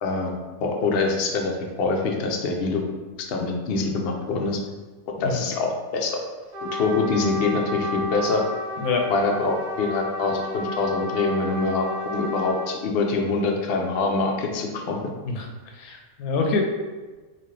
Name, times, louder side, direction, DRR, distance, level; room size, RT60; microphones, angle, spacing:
voice 1, 0.0-2.8 3.3-4.6 5.2-6.2 6.6-8.4 9.1-15.1, left 3 dB, 65° left, 1 dB, 0.6 m, -25 dB
Trumpet, 6.5-12.7, left 1 dB, 45° right, 0.7 m, -32 dB
voice 2, 8.8-9.1 15.2-16.6, left 4 dB, 85° left, 2 dB, 1.1 m, -26 dB
4.1 x 2.4 x 3.2 m, 1.3 s
omnidirectional pair, 1.5 m